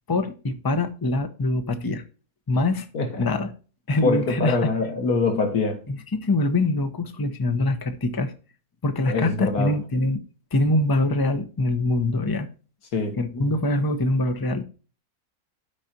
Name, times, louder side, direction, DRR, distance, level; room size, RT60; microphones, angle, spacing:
voice 1, 0.1-2.0 2.5-2.9 3.2-3.5 3.9-4.7 5.9-8.3 8.8-10.2 10.5-12.5 13.2-14.6, left 2 dB, 20° left, 0.7 m, -24 dB
voice 2, 2.9-3.3 4.0-5.8 9.1-9.7 12.9-13.2, left 3 dB, 85° left, 2.0 m, -24 dB
12.5 x 4.9 x 2.8 m
omnidirectional pair, 1.6 m